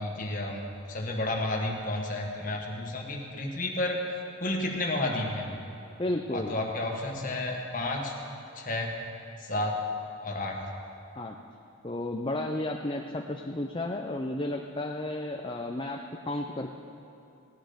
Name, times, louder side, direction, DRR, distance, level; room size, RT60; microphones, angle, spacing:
voice 1, 0.0-4.0 4.4-5.5 6.3-8.1 8.6-9.0 9.4-9.8 10.2-10.6, left 1 dB, 40° left, 0 dB, 1.6 m, -31 dB
voice 2, 6.0-6.5 11.2-11.4 11.8-16.7, left 1 dB, 20° left, 2 dB, 0.5 m, -33 dB
17.0 x 10.0 x 5.1 m, 2.8 s
head